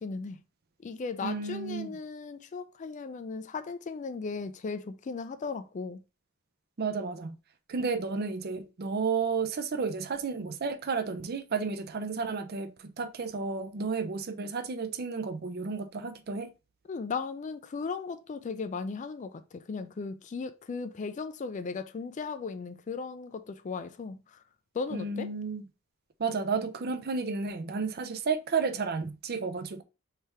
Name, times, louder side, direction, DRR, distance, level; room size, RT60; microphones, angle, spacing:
voice 1, 0.0-0.4 0.8-6.0 16.9-24.4 24.7-25.3, left 4 dB, 35° left, 0.3 m, -36 dB
voice 2, 1.2-1.9 6.8-7.3 7.7-16.5 24.9-25.6 26.2-29.8, right 5 dB, 45° right, 0.5 m, -32 dB
3.4 x 3.3 x 4.2 m
head